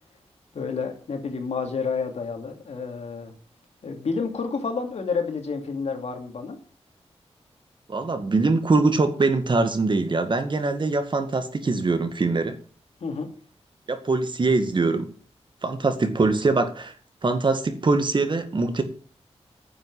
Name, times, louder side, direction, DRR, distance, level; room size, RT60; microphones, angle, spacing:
voice 1, 0.5-3.3 3.8-6.6 13.0-13.3, left 5 dB, 70° left, 2.7 m, -29 dB
voice 2, 7.9-12.6 13.9-15.1 15.6-16.9 17.2-18.8, right 3 dB, 45° right, 1.9 m, -23 dB
9.9 x 7.6 x 7.6 m
wide cardioid pair, 90°, 11 cm